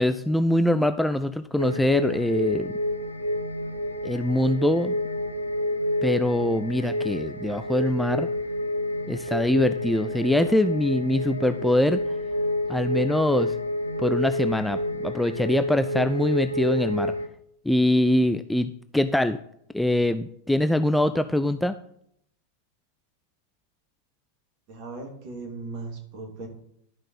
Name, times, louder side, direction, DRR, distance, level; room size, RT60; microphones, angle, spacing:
voice 1, 0.0-2.7 4.0-4.9 6.0-8.3 9.1-12.0 12.7-13.6 14.0-17.1 17.7-19.4 19.7-21.8, left 1 dB, 5° left, 11 dB, 0.4 m, -23 dB
sound 1, 1.6-17.3, left 1 dB, 85° left, 0.8 m, -29 dB
voice 2, 24.7-26.5, right 3 dB, 45° right, 2 dB, 2.7 m, -37 dB
12.0 x 5.3 x 5.4 m, 0.71 s
figure-of-eight pair, 90°, 0 cm